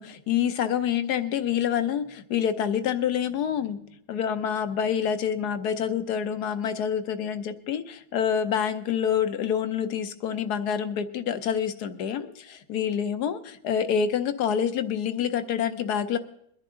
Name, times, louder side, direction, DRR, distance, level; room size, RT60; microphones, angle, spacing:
voice 1, 0.0-3.8 4.1-16.2, left 8 dB, 65° left, 11 dB, 1.2 m, -27 dB
22.0 x 10.5 x 3.7 m, 0.71 s
omnidirectional pair, 2.1 m